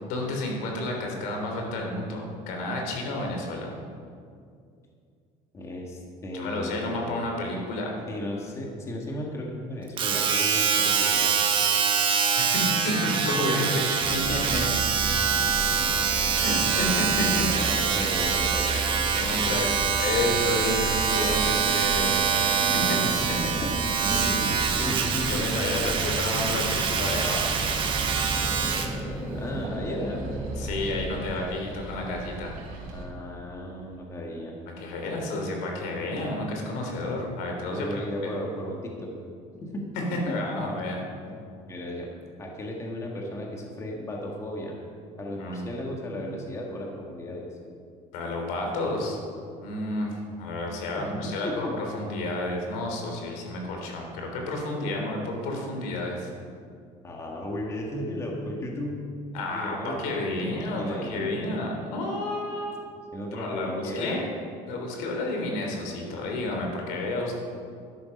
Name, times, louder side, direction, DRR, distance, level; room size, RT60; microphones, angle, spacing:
voice 1, 0.1-3.7 6.3-7.9 12.4-14.7 16.4-17.5 19.1-19.7 20.0-22.3 22.5-23.0 25.3-27.4 30.6-32.5 34.8-38.0 39.9-41.0 45.4-45.6 48.1-49.2 49.6-56.3 59.3-62.8 63.3-64.2 64.7-67.3, left 1 dB, 85° left, 1 dB, 3.3 m, -30 dB
voice 2, 5.5-7.1 8.1-11.4 17.6-18.8 23.0-23.1 23.4-25.5 25.7-26.0 29.3-30.2 32.9-34.5 37.7-39.1 39.6-39.8 40.3-40.8 41.7-42.1 42.4-44.8 45.2-47.5 51.0-51.8 57.0-59.0 59.5-61.3 63.1-64.2, left 1 dB, 20° left, -1 dB, 1.7 m, -35 dB
Domestic sounds home sounds, 10.0-29.0 29.6-29.7, right 6 dB, 35° right, 1.1 m, -25 dB
sound 1, 14.0-31.4, right 2 dB, 5° right, 1.4 m, -34 dB
sound 2, 14.0-33.1, right 3 dB, 85° right, 3.7 m, -41 dB
13.0 x 11.5 x 5.3 m, 2.3 s
cardioid pair, 165°, 14 cm